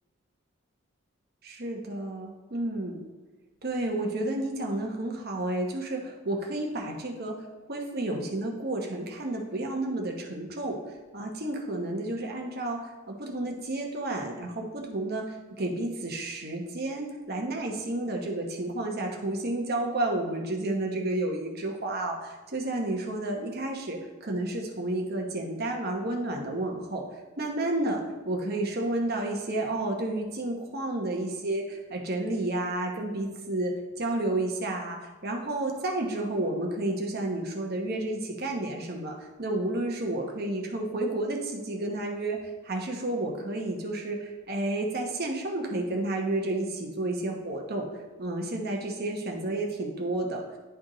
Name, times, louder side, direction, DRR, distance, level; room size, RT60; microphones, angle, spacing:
voice 1, 1.4-3.1 3.6-7.4 7.7-10.8 11.1-27.0 27.4-33.7 34.0-42.4 42.6-47.9 48.2-50.4, right 2 dB, 45° right, 1 dB, 1.0 m, -31 dB
10.0 x 3.5 x 3.8 m, 1.2 s
head